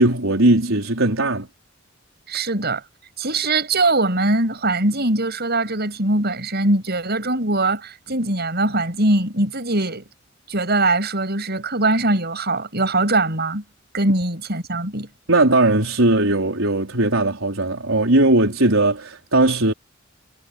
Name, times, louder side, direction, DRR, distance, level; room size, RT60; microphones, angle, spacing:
voice 1, 0.0-1.5 15.3-19.7, right 2 dB, 85° right, 4.6 m, -18 dB
voice 2, 2.3-2.8 3.2-10.0 10.5-13.6 13.9-15.1, right 2 dB, 55° right, 7.5 m, -21 dB
head